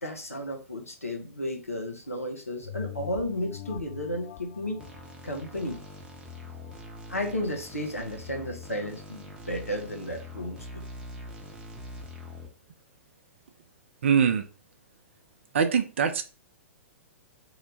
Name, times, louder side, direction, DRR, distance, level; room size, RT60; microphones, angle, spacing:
voice 1, 0.0-4.8 5.2-5.8 7.1-10.8, left 1 dB, 90° left, 0.7 m, -33 dB
sound 1, 2.6-7.6 8.0-8.1, left 11 dB, 45° left, 0.6 m, -44 dB
sound 2, 4.8-12.5, left 1 dB, 15° right, 0.7 m, -43 dB
voice 2, 14.0-14.4 15.5-16.2, right 7 dB, 60° right, 0.5 m, -23 dB
2.9 x 2.1 x 3.9 m
figure-of-eight pair, 110°, 7 cm